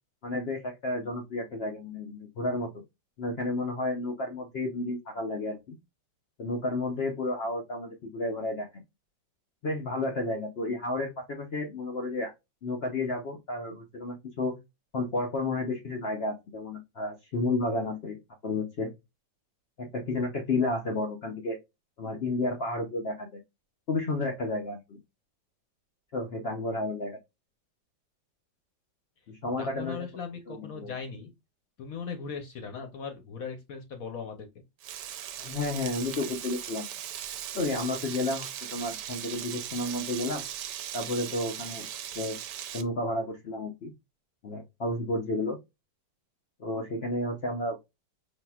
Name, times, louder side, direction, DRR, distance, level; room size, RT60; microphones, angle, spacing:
voice 1, 0.2-2.7 3.2-5.8 6.4-8.8 9.6-12.3 12.6-14.6 14.9-18.9 19.8-21.6 22.0-23.4 23.9-25.0 26.1-27.2 29.3-30.1 30.5-30.9 35.4-36.9 37.5-40.4 40.9-41.9 42.1-42.4 42.7-43.9 44.4-45.6 46.6-47.8, left 2 dB, 75° left, 0.5 m, -31 dB
voice 2, 29.6-31.3 31.8-34.5, left 5 dB, 60° left, 1.0 m, -38 dB
Frying (food), 34.8-42.8, right 10 dB, 75° right, 1.1 m, -38 dB
5.1 x 2.8 x 2.2 m
omnidirectional pair, 2.0 m